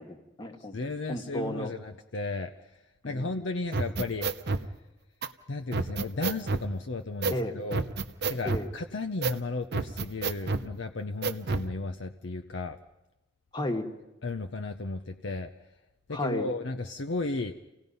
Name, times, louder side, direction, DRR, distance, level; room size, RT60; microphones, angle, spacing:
voice 1, 0.0-0.8 1.1-1.7 3.0-3.2 7.3-7.5 8.4-8.7 13.5-13.9 16.1-16.5, left 1 dB, 20° left, 5 dB, 1.5 m, -33 dB
voice 2, 0.7-2.8 3.0-4.7 5.5-7.8 8.3-12.8 14.2-15.5 16.1-17.5, left 3 dB, 60° left, 6 dB, 0.7 m, -34 dB
sound 1, 3.7-4.7 5.2-5.3 5.7-6.7 7.2-7.4 7.7-8.7 9.2-9.4 9.7-10.7 11.2-11.7, right 3 dB, 55° right, 0.7 m, -29 dB
29.0 x 17.5 x 5.5 m, 1.0 s
head